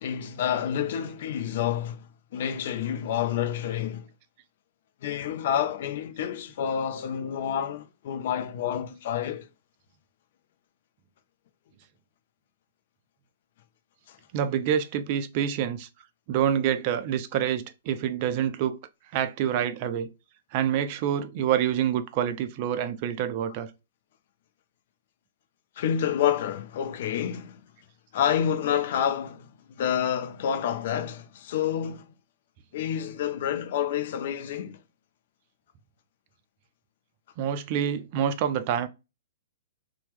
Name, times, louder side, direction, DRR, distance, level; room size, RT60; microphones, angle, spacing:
voice 1, 0.0-4.1 5.0-9.5 14.1-14.2 25.8-27.6 28.1-29.5 29.8-32.1 32.7-34.8, left 9 dB, 45° left, 0.4 m, -28 dB
voice 2, 14.3-15.9 16.3-18.8 19.1-20.1 20.5-23.7 37.4-38.9, right 9 dB, 35° right, 0.3 m, -27 dB
2.8 x 2.0 x 3.1 m
figure-of-eight pair, 115°, 0 cm